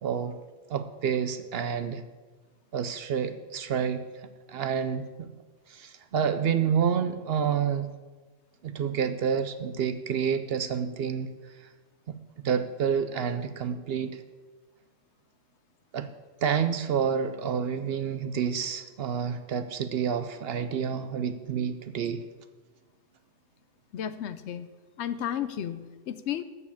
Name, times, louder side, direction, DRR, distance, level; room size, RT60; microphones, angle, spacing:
voice 1, 0.0-0.4 0.7-2.0 2.7-4.0 4.5-5.3 5.7-7.9 8.6-11.3 12.4-14.2 15.9-16.1 16.4-22.2, right 7 dB, 60° right, 10 dB, 0.7 m, -28 dB
voice 2, 23.9-24.7 25.0-26.4, left 10 dB, 70° left, 12 dB, 0.8 m, -33 dB
8.3 x 7.1 x 7.1 m, 1.3 s
omnidirectional pair, 1.3 m